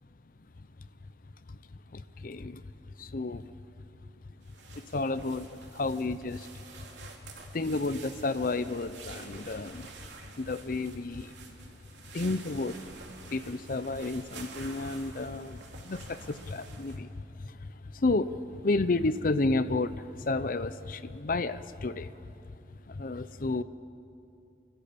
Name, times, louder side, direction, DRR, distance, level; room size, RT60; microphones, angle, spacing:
voice 1, 1.9-2.6 3.0-3.5 4.9-6.5 7.5-9.9 10.4-11.3 12.1-12.8 13.3-17.1 17.4-17.5 17.9-18.4 18.6-22.1 22.9-23.6, left 2 dB, 50° left, 13 dB, 0.6 m, -31 dB
sound 1, 4.4-17.0, right 4 dB, 90° right, 2.9 m, -49 dB
28.5 x 13.5 x 8.5 m, 2.6 s
head